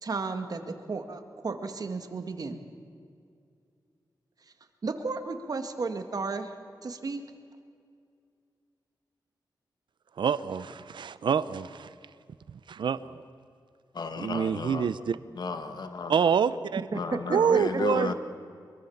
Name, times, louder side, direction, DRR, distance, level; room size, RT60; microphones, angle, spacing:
voice 1, 0.0-2.6 4.8-6.5 6.8-7.2 16.9-17.2 17.5-18.0, right 4 dB, 55° right, 7 dB, 1.9 m, -33 dB
voice 2, 10.2-11.9 12.5-13.2 14.2-15.2 16.1-16.8 17.3-18.1, right 7 dB, 85° right, 15 dB, 0.7 m, -26 dB
voice 3, 13.9-14.9 15.4-16.1 16.9-18.1, left 4 dB, 65° left, 8 dB, 1.6 m, -33 dB
24.0 x 22.5 x 7.2 m, 2.3 s
wide cardioid pair, 100°, 8 cm